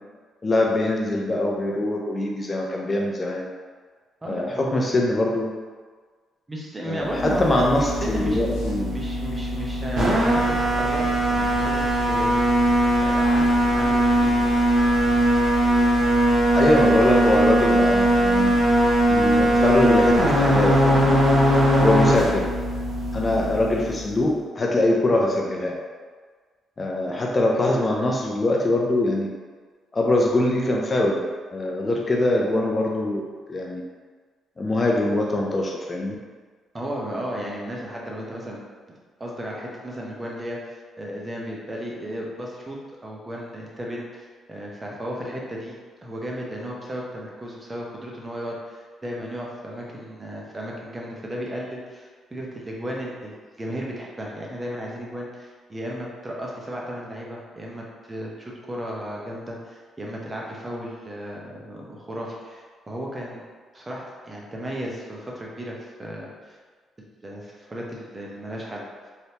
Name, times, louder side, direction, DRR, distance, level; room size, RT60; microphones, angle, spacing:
voice 1, 0.4-3.5 4.3-5.5 6.9-9.0 16.5-18.6 19.1-21.2 21.8-22.5 23.1-25.8 26.8-29.3 29.9-31.2 31.5-33.2 33.5-33.8 34.6-36.1, left 1 dB, 30° left, -1 dB, 0.4 m, -23 dB
voice 2, 4.2-4.9 6.5-8.4 8.9-12.4 13.0-14.5 36.7-38.6 39.2-45.8 46.0-63.4 63.7-66.6 67.2-68.8, equal, 20° right, -3 dB, 0.7 m, -34 dB
sound 1, 7.0-24.3, right 1 dB, 70° right, 0.9 m, -20 dB
sound 2, 7.8-9.3, right 2 dB, 85° left, 0.6 m, -40 dB
3.3 x 2.7 x 2.8 m, 1.5 s
cardioid pair, 90°, 0 cm